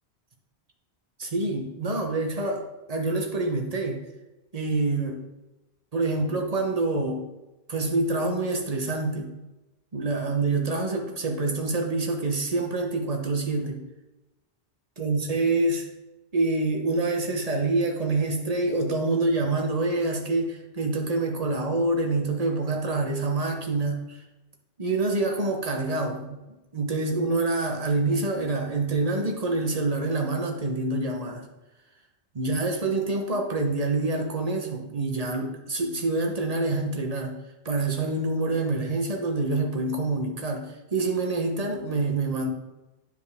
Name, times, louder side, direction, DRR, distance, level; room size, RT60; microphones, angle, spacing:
voice 1, 1.2-4.0 4.5-5.2 5.9-7.3 7.7-9.3 9.9-13.9 15.0-15.9 16.3-24.2 24.8-26.4 26.7-31.5 32.3-42.5, right 2 dB, 35° right, 2 dB, 1.1 m, -26 dB
10.0 x 4.8 x 3.6 m, 1.0 s
omnidirectional pair, 1.1 m